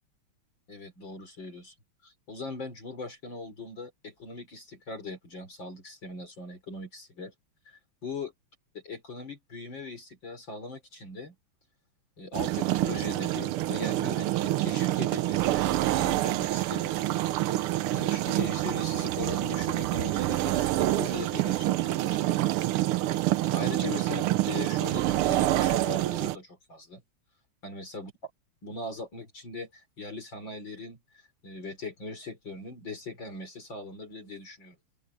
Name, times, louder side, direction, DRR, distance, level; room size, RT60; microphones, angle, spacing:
voice 1, 0.7-1.7 2.0-7.3 7.7-8.3 8.7-11.3 12.2-15.7 15.9-16.9 17.3-22.2 23.5-27.0 27.6-28.1 28.6-31.0 31.4-34.8, left 3 dB, 60° left, 5.0 m, -40 dB
sound 1, 12.3-26.4, right 15 dB, 90° right, 1.6 m, -27 dB
open air
omnidirectional pair, 2.4 m